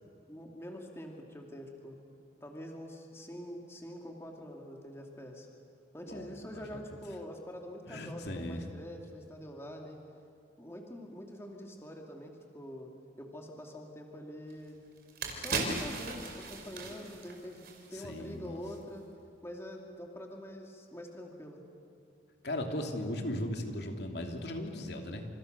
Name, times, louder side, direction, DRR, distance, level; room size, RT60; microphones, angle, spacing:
voice 1, 0.3-2.0 2.4-5.5 5.9-10.0 10.6-12.9 13.2-14.8 15.3-19.0 19.4-21.6, equal, 15° left, 1 dB, 2.7 m, -45 dB
voice 2, 6.1-6.8 7.9-8.6 17.9-18.6 22.4-25.3, left 1 dB, 70° left, 3 dB, 3.0 m, -37 dB
sound 1, 14.5-14.6 15.0-18.3 18.6-18.7, right 3 dB, 55° right, 4.6 m, -37 dB
29.5 x 28.0 x 6.8 m, 2.4 s
head